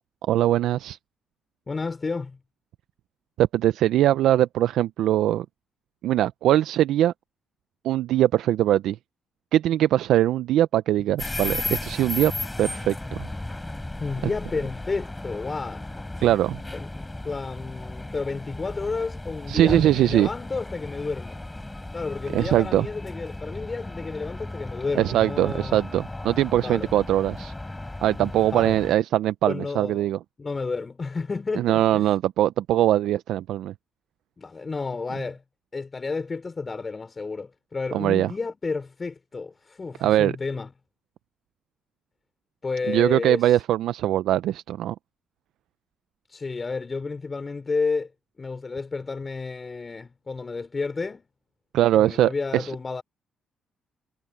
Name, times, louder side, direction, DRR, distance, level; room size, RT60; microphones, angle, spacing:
voice 1, 0.2-1.0 3.4-5.5 6.0-7.1 7.8-9.0 9.5-12.3 12.6-13.3 16.2-16.6 19.5-20.3 22.3-22.9 25.0-27.5 28.0-30.2 31.6-33.7 37.9-38.3 40.0-40.3 42.9-44.9 51.7-52.7, right 12 dB, 80° right, 0.5 m, -21 dB
voice 2, 1.7-2.4 14.0-15.9 16.7-16.9 17.2-21.4 21.9-25.9 26.6-26.9 28.2-28.8 29.4-30.1 30.4-32.2 34.4-35.4 35.7-40.7 42.6-43.6 46.3-48.1 48.4-51.2 51.9-53.0, left 4 dB, 30° left, 5.3 m, -31 dB
sound 1, 11.2-28.9, left 2 dB, 15° left, 5.9 m, -35 dB
cardioid pair, 90°, 0 cm